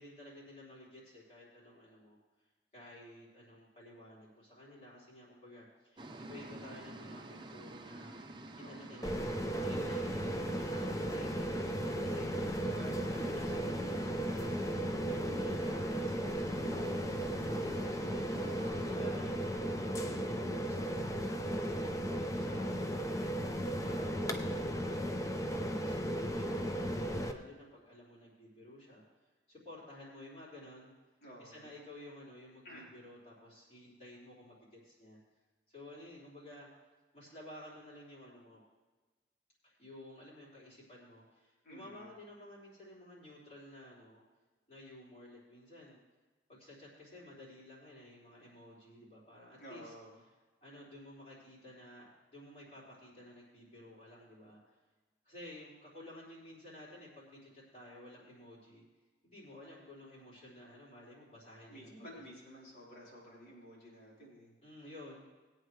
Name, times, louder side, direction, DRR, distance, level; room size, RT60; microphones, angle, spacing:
voice 1, 0.0-2.2 2.7-8.1 8.5-12.5 12.8-14.5 15.0-18.2 18.8-29.0 29.5-30.9 31.4-35.2 35.7-36.7 37.1-38.6 39.6-44.2 44.7-46.0 46.5-49.9 50.6-54.6 55.2-58.8 59.2-62.3 64.6-65.3, left 1 dB, 35° left, -7 dB, 4.4 m, -53 dB
sound 1, 6.0-18.9, right 1 dB, 25° right, 0.7 m, -49 dB
voice 2, 8.5-9.0 12.4-13.1 18.3-18.9 31.2-31.7 32.6-32.9 41.6-42.1 49.6-50.2 61.7-64.5, equal, 65° left, -5 dB, 4.1 m, -52 dB
sound 2, 9.0-27.3, equal, 20° left, 0.6 m, -35 dB
20.5 x 8.9 x 3.2 m, 1.3 s
head